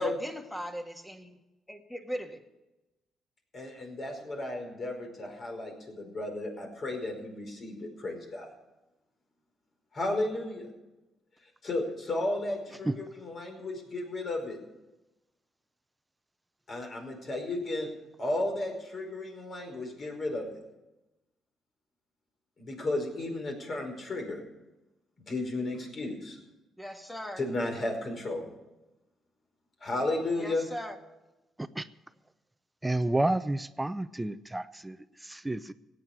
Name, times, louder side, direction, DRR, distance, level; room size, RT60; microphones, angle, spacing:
voice 1, 0.0-1.4 1.7-2.4 26.8-27.4 30.4-31.0, equal, 10° left, 5 dB, 1.9 m, -39 dB
voice 2, 3.5-8.5 9.9-10.7 11.6-14.6 16.7-17.9 18.2-20.5 22.6-24.4 25.3-26.4 27.4-28.5 29.8-30.7, left 2 dB, 45° left, 3 dB, 5.1 m, -33 dB
voice 3, 32.8-35.7, right 2 dB, 10° right, 13 dB, 0.6 m, -30 dB
16.5 x 9.2 x 8.1 m, 1.0 s
cardioid pair, 90°, 0 cm